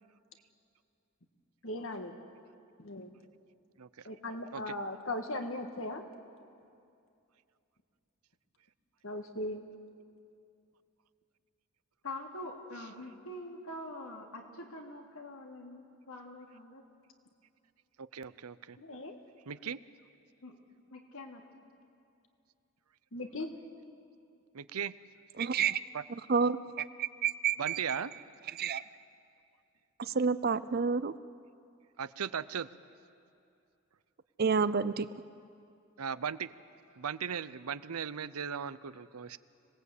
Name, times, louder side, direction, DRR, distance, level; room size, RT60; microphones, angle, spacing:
voice 1, 1.6-2.1 2.8-3.1 4.0-6.0 9.0-9.6 18.8-19.2 23.1-23.5, left 1 dB, 65° left, 6 dB, 1.8 m, -38 dB
voice 2, 3.8-4.1 4.5-4.7 18.0-18.8 19.5-19.8 24.5-24.9 25.9-26.0 27.6-28.1 32.0-32.7 36.0-36.5 37.0-39.4, right 7 dB, 90° right, 16 dB, 0.7 m, -37 dB
voice 3, 12.0-16.8 20.4-20.6 20.9-21.4, left 1 dB, 80° left, 1 dB, 2.9 m, -44 dB
voice 4, 25.4-25.8 26.1-28.0 28.5-28.8 30.0-31.1 34.4-35.1, right 6 dB, 45° right, 16 dB, 0.5 m, -30 dB
26.0 x 19.0 x 8.4 m, 2.5 s
head